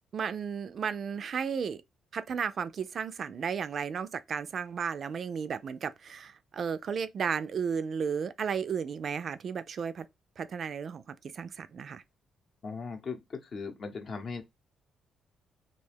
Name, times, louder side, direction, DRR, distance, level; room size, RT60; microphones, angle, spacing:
voice 1, 0.1-1.8 2.1-10.1 10.4-12.0, right 6 dB, 55° right, 0.3 m, -34 dB
voice 2, 12.6-13.2 13.5-14.4, left 4 dB, 50° left, 0.7 m, -38 dB
2.4 x 2.2 x 3.3 m
cardioid pair, 90°, 0 cm